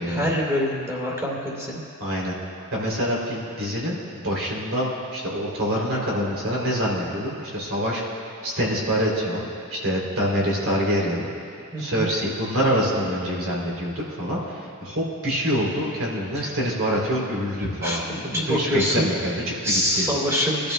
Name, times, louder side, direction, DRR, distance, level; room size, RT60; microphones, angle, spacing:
voice 1, 0.1-1.8 11.7-12.1 16.3-16.5 17.6-18.0 18.3-19.1 19.6-20.7, equal, 15° right, -4 dB, 2.6 m, -25 dB
voice 2, 2.0-2.3 2.7-11.3 11.8-20.1, equal, 65° right, -3 dB, 3.0 m, -26 dB
25.0 x 12.0 x 2.2 m, 2.5 s
head